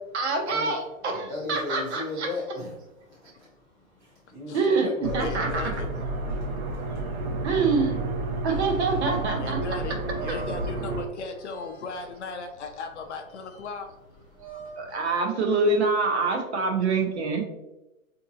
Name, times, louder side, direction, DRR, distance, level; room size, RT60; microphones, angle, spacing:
voice 1, 0.1-2.3 4.5-5.6 7.4-7.9 8.4-9.6 10.3-10.4 14.8-17.4, right 3 dB, 50° right, 2 dB, 0.8 m, -25 dB
voice 2, 1.3-2.7 3.1-3.5 4.0-5.2 6.3-7.0 14.3-14.9, left 2 dB, 10° right, -8 dB, 0.5 m, -37 dB
sound 1, 5.0-11.0, right 2 dB, 80° right, 0.8 m, -30 dB
voice 3, 5.2-5.9 9.4-13.9, left 4 dB, 55° left, 5 dB, 0.5 m, -37 dB
sound 2, 8.5-15.2, right 3 dB, 25° left, 0.9 m, -46 dB
3.8 x 2.7 x 2.6 m, 0.97 s
hypercardioid pair, 150°, 42 cm